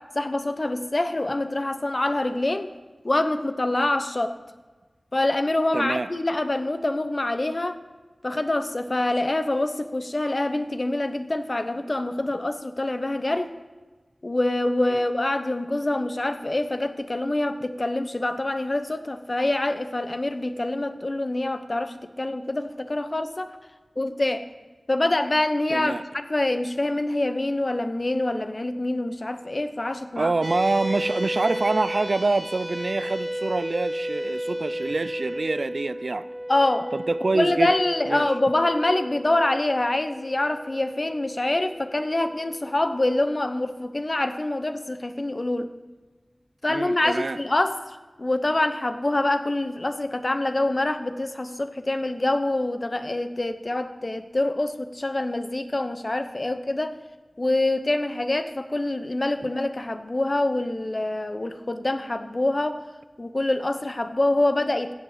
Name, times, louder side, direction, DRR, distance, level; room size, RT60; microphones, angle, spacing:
voice 1, 0.0-2.7 3.0-4.4 5.1-7.8 8.2-13.5 14.2-23.6 24.0-24.4 24.9-30.3 36.5-36.9 37.3-45.7 46.6-57.0 57.4-62.8 63.2-64.9, left 2 dB, 45° left, 9 dB, 0.9 m, -25 dB
voice 2, 5.7-6.1 14.9-15.0 25.7-26.0 30.2-36.3 36.9-37.7 38.1-38.3 46.7-47.4 59.4-59.5, right 3 dB, 75° right, 14 dB, 0.4 m, -26 dB
sound 1, 30.4-43.1, equal, 10° right, 0.9 m, -33 dB
15.5 x 7.8 x 5.0 m, 1.3 s
wide cardioid pair, 60°, 0 cm